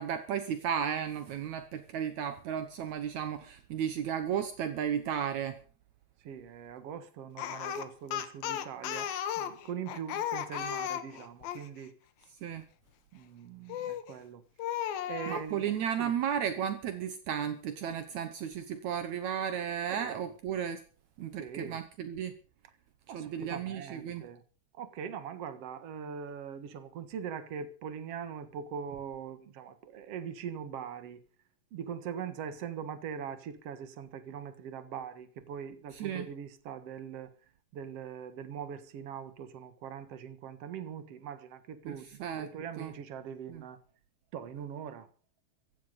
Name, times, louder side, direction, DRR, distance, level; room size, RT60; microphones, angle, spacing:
voice 1, 0.0-5.6 12.4-12.6 15.3-20.8 21.2-22.3 23.1-24.3 35.9-36.3 41.8-42.5 42.8-42.9 43.5-43.6, right 8 dB, 75° right, 1.6 m, -34 dB
voice 2, 6.2-11.9 13.1-14.4 15.1-16.1 19.9-20.2 21.4-21.8 23.1-24.4 24.8-31.2 31.7-37.3 37.7-43.8 44.3-45.1, right 7 dB, 55° right, 1.8 m, -42 dB
Speech, 7.4-11.7 13.7-14.1 14.6-15.5, left 10 dB, 70° left, 2.8 m, -35 dB
16.0 x 13.5 x 5.4 m
omnidirectional pair, 4.8 m